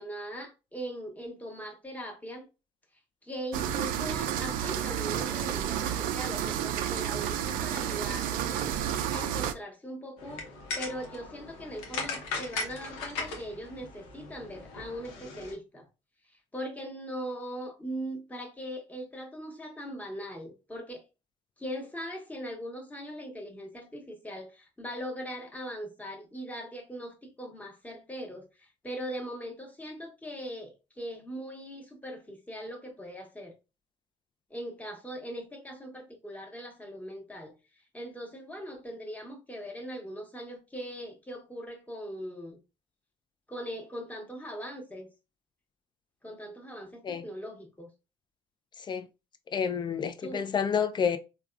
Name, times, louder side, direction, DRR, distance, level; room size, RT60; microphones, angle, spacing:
voice 1, 0.0-2.5 3.2-8.8 9.1-10.5 10.8-15.9 16.5-21.0 21.6-33.5 34.5-37.5 37.9-42.6 43.5-45.1 46.2-47.9 50.2-50.5, equal, 10° left, 1.0 m, -40 dB
sound 1, 3.5-9.5, right 10 dB, 70° right, 0.4 m, -31 dB
sound 2, 10.2-15.5, left 3 dB, 80° left, 0.7 m, -38 dB
voice 2, 49.5-51.2, left 7 dB, 30° left, 0.4 m, -29 dB
3.4 x 2.2 x 2.3 m
hypercardioid pair, 65°, 15 cm